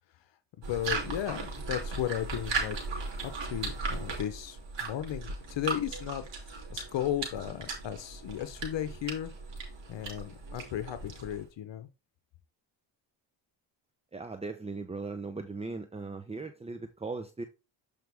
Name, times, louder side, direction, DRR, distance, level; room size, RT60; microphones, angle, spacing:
voice 1, 0.6-2.8 3.2-9.3 9.9-11.9, left 11 dB, 65° left, 0.9 m, -35 dB
sound 1, 0.6-11.5, right 4 dB, 65° right, 3.1 m, -37 dB
voice 2, 14.1-17.4, right 3 dB, 15° right, 0.8 m, -38 dB
7.7 x 5.2 x 3.5 m
cardioid pair, 75°, 46 cm